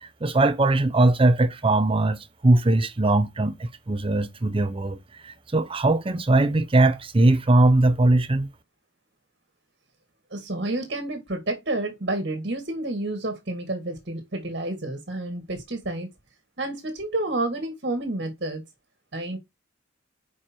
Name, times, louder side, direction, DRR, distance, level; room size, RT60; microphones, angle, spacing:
voice 1, 0.2-5.0 5.2-8.5, right 2 dB, 30° right, 0.7 m, -20 dB
voice 2, 10.3-16.1 16.6-18.6 19.1-19.4, right 2 dB, 60° right, 1.8 m, -30 dB
5.7 x 4.8 x 4.4 m
head